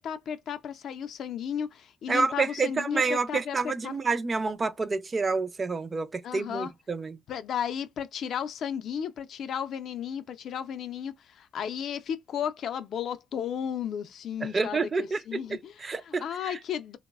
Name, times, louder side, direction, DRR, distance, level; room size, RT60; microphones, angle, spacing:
voice 1, 0.0-3.9 6.2-6.7 7.3-17.0, left 8 dB, 60° left, 0.4 m, -34 dB
voice 2, 2.1-7.2 14.4-16.6, right 4 dB, 30° right, 0.4 m, -29 dB
3.0 x 2.0 x 2.2 m
cardioid pair, 115°, 0 cm